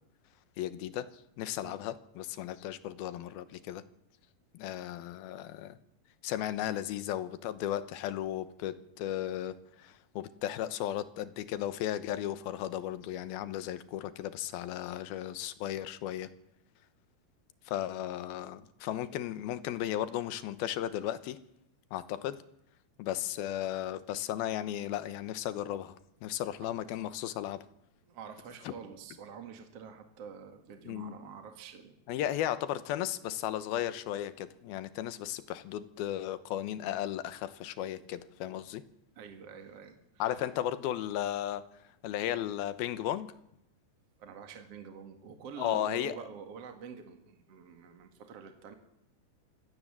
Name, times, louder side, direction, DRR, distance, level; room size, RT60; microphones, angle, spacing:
voice 1, 0.6-1.1 1.4-3.8 4.5-5.8 6.2-16.3 17.7-21.4 21.9-22.4 23.0-27.6 30.9-31.2 32.1-38.8 40.2-41.6 42.0-43.3 45.6-46.2, left 12 dB, 75° left, 14 dB, 2.7 m, -35 dB
voice 2, 28.1-32.3 39.2-40.5 44.2-48.7, right 6 dB, 45° right, 6 dB, 2.5 m, -47 dB
25.5 x 16.5 x 7.5 m, 0.79 s
omnidirectional pair, 4.7 m